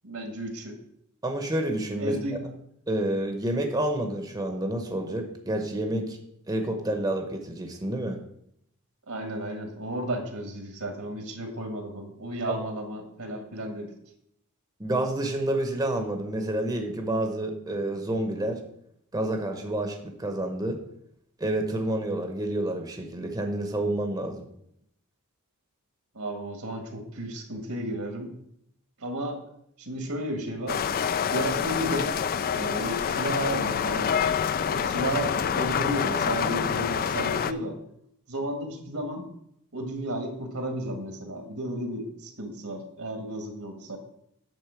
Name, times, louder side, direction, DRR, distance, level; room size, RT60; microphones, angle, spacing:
voice 1, 0.0-0.8 2.0-2.5 9.1-13.9 26.1-28.3 29.0-29.4 29.8-30.8 31.3-32.2 32.5-34.2 34.7-37.8 38.3-39.3 39.7-44.0, right 1 dB, 75° right, 5 dB, 1.8 m, -33 dB
voice 2, 1.2-2.2 2.9-6.2 6.5-8.2 12.5-12.6 14.8-18.6 19.1-20.8 21.4-24.5, right 1 dB, 15° right, 4 dB, 0.8 m, -29 dB
sound 1, 30.7-37.5, left 7 dB, 40° left, 0.3 m, -27 dB
9.0 x 4.1 x 7.0 m, 0.74 s
head